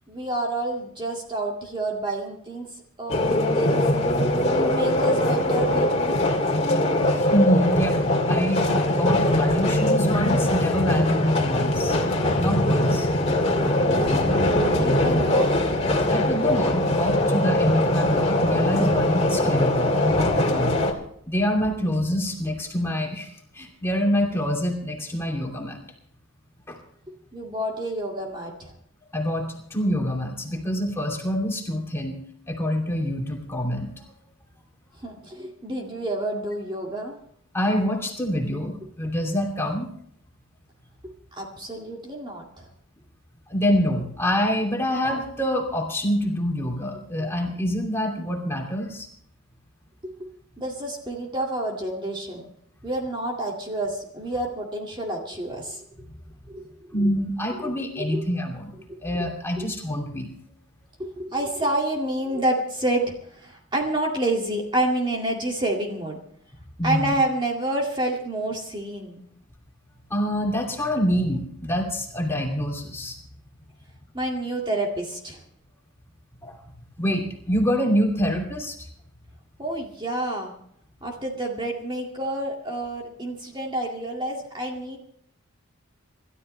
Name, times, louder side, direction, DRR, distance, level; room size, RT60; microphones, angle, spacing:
voice 1, 0.1-3.8 4.5-6.2 13.2-13.3 13.8-15.6 27.3-28.7 35.0-37.2 41.3-42.7 50.0-50.1 50.6-52.4 52.8-55.9 56.5-56.7 57.9-58.2 59.6-59.7 61.0-66.2 66.8-69.2 74.1-75.4 79.6-80.5 81.0-85.0, right 1 dB, 20° right, 0 dB, 2.1 m, -29 dB
sound 1, 3.1-20.9, left 1 dB, 30° left, 2.1 m, -22 dB
voice 2, 7.1-8.0 8.3-12.0 12.4-13.1 16.1-20.7 21.3-25.8 26.7-26.8 29.1-32.2 32.5-34.0 37.5-39.9 43.5-49.1 56.9-58.7 59.0-60.3 66.8-67.1 70.1-73.2 76.4-76.6 77.0-78.8, equal, 10° left, 1 dB, 2.7 m, -26 dB
Thunder, 13.9-22.7, equal, 50° right, 6.2 m, -37 dB
26.5 x 13.0 x 3.3 m, 0.66 s
head